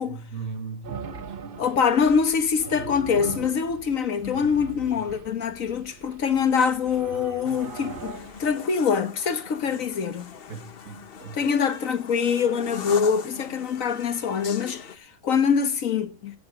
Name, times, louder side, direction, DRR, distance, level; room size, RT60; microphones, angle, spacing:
voice 1, 0.0-1.6 10.5-11.4, right 5 dB, 80° right, 2.1 m, -38 dB
sound 1, 0.8-8.6, right 6 dB, 45° right, 1.0 m, -40 dB
voice 2, 1.6-10.3 11.3-16.3, left 6 dB, 70° left, 1.6 m, -24 dB
sound 2, 7.4-15.0, left 7 dB, 45° left, 1.0 m, -41 dB
16.0 x 8.9 x 5.0 m
omnidirectional pair, 1.5 m